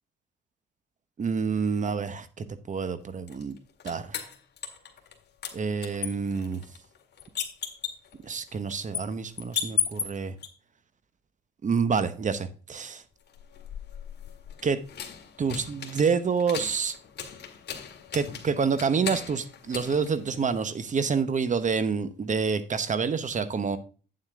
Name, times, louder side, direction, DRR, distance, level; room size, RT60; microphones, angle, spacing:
voice 1, 1.2-3.6 3.8-4.3 5.5-6.6 8.2-10.3 11.6-13.0 14.6-14.8 15.4-17.0 18.1-23.8, right 5 dB, 40° right, 13 dB, 1.1 m, -28 dB
sound 1, 3.3-5.2 5.4-10.5 13.3-20.8, left 9 dB, 60° left, 1.9 m, -36 dB
8.8 x 7.6 x 3.6 m, 0.37 s
cardioid pair, 90°, 20 cm